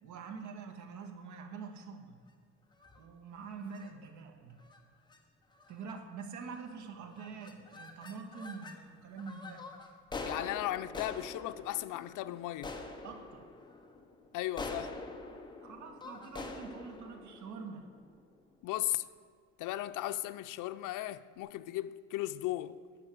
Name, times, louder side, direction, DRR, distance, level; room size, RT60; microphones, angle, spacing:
voice 1, 0.0-2.2 3.0-4.5 5.7-9.7 13.0-13.5 15.6-17.9, right 5 dB, 65° right, 1.8 m, -45 dB
sound 1, 2.7-3.1 3.6-3.9 4.6-4.8 5.1-5.2 5.5-5.9 6.5-6.8 7.1-8.8 9.2-18.4, left 3 dB, 15° left, 1.2 m, -45 dB
voice 2, 10.2-12.8 14.3-15.0 18.6-19.0 19.6-22.8, left 15 dB, 85° left, 0.6 m, -36 dB
12.0 x 7.0 x 9.3 m
cardioid pair, 150°, 31 cm